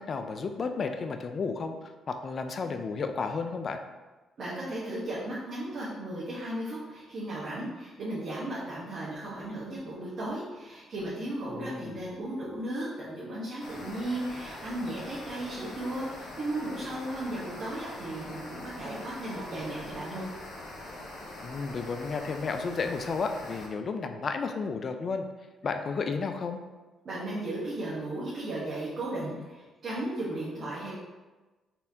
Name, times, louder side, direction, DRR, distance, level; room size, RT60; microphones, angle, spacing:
voice 1, 0.0-3.8 11.5-12.0 21.4-25.3 25.6-26.6, left 4 dB, 45° left, 7 dB, 0.4 m, -32 dB
voice 2, 4.4-20.2 27.0-30.9, right 1 dB, 50° right, -9 dB, 1.1 m, -35 dB
sound 1, 13.6-23.7, left 2 dB, 85° left, 1.0 m, -43 dB
4.2 x 3.6 x 2.7 m, 1.2 s
cardioid pair, 90°, 0 cm